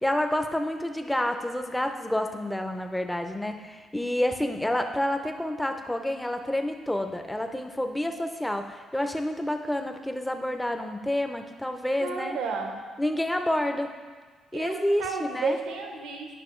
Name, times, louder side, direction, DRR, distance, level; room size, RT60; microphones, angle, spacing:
voice 1, 0.0-12.4 13.0-13.9 14.5-15.6, left 1 dB, 5° left, 6 dB, 0.6 m, -29 dB
voice 2, 12.0-12.8 14.5-16.4, right 4 dB, 90° right, 3 dB, 0.9 m, -32 dB
9.8 x 5.6 x 3.1 m, 1.4 s
cardioid pair, 90°, 0 cm